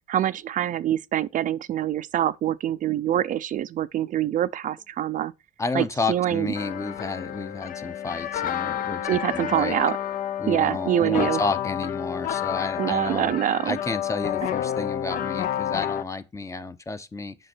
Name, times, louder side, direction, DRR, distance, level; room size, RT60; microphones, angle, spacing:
voice 1, 0.1-5.3 5.7-6.5 9.1-10.0 10.5-11.4 12.8-13.8, right 11 dB, 50° right, 0.5 m, -25 dB
voice 2, 5.6-9.7 10.4-13.4 13.7-17.4, left 3 dB, 20° left, 0.8 m, -31 dB
sound 1, 6.5-16.0, left 10 dB, 55° left, 0.7 m, -30 dB
7.7 x 5.9 x 4.4 m
cardioid pair, 110°, 17 cm